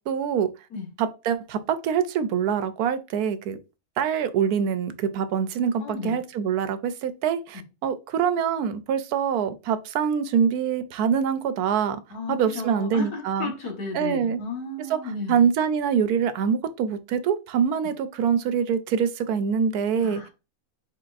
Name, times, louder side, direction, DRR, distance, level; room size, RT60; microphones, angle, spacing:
voice 1, 0.1-0.5 1.0-3.6 4.0-12.0 12.3-13.5 13.9-14.4 14.9-15.0 15.3-20.2, right 7 dB, 80° right, 1.1 m, -24 dB
voice 2, 5.8-6.2 7.5-7.6 12.1-15.4 20.0-20.3, left 3 dB, 80° left, 1.9 m, -34 dB
4.6 x 4.2 x 2.5 m
omnidirectional pair, 1.6 m